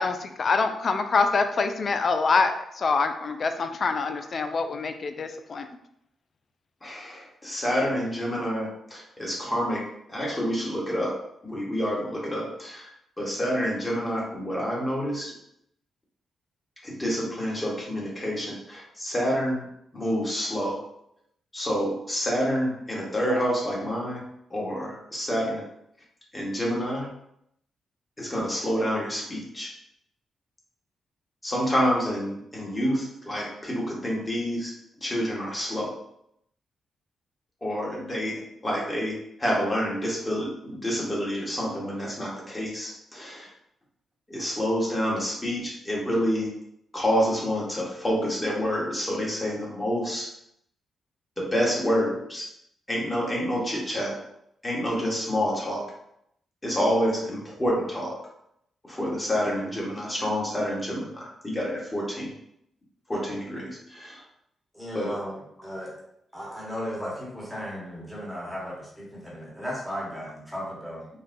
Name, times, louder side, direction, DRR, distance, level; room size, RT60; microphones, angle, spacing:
voice 1, 0.0-5.7, left 4 dB, 55° left, 8 dB, 0.3 m, -25 dB
voice 2, 6.8-9.8 10.1-11.1 11.4-12.9 13.2-15.3 16.8-19.7 19.9-20.8 21.5-24.2 24.5-25.6 26.3-27.1 28.2-29.7 31.4-34.7 35.0-35.9 37.6-43.5 44.3-46.5 46.9-50.3 51.4-52.5 52.9-54.2 54.6-55.8 56.6-58.2 58.8-62.3 63.1-64.2 64.9-65.1, equal, 20° left, -3 dB, 1.3 m, -28 dB
voice 3, 64.7-65.9 66.3-71.1, equal, 5° left, -5 dB, 1.2 m, -35 dB
3.9 x 2.2 x 2.6 m, 0.76 s
cardioid pair, 65°, 0 cm